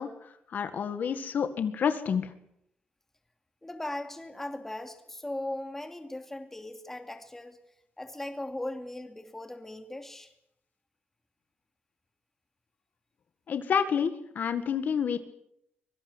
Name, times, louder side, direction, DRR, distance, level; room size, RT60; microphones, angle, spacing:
voice 1, 0.0-2.3 13.5-15.2, left 7 dB, 55° left, 9 dB, 1.8 m, -29 dB
voice 2, 3.6-7.6 8.0-10.3, left 1 dB, 10° left, 6 dB, 2.6 m, -38 dB
24.5 x 23.0 x 8.1 m, 0.76 s
wide cardioid pair, 165°, 4 cm